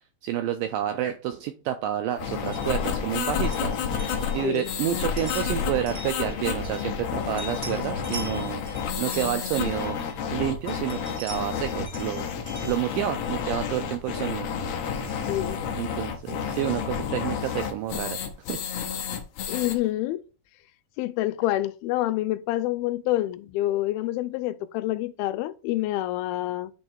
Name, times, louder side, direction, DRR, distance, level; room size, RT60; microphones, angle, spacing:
voice 1, 0.2-3.7 4.3-8.6 9.0-10.0 10.3-12.3 12.7-14.5 15.8-18.2 18.5-18.6, right 12 dB, 85° right, 2.0 m, -29 dB
sound 1, 2.2-19.7, left 7 dB, 70° left, 1.6 m, -30 dB
sound 2, 2.4-7.1 7.4-10.3 10.7-13.7, equal, 20° right, 1.0 m, -43 dB
voice 2, 15.3-15.6 19.5-20.2 21.0-26.7, left 15 dB, 85° left, 2.4 m, -27 dB
8.6 x 3.2 x 4.4 m
omnidirectional pair, 4.3 m